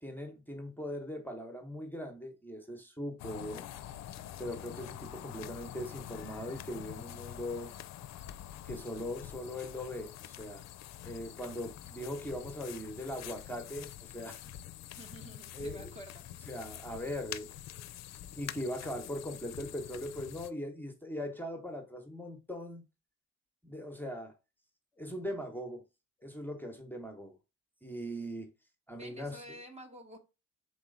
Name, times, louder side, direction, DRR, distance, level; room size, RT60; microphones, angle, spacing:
voice 1, 0.0-3.6 4.4-7.7 8.6-10.6 11.0-14.5 15.5-15.9 16.5-17.8 18.4-22.8 23.6-24.3 25.0-25.8 26.2-27.3 27.8-28.5 28.9-29.4, equal, 5° left, 0.9 m, -40 dB
sound 1, 3.2-20.5, left 12 dB, 60° left, 0.5 m, -46 dB
voice 2, 15.0-16.2 28.9-30.2, equal, 20° right, 1.0 m, -49 dB
4.1 x 3.0 x 3.8 m
cardioid pair, 90°, 30 cm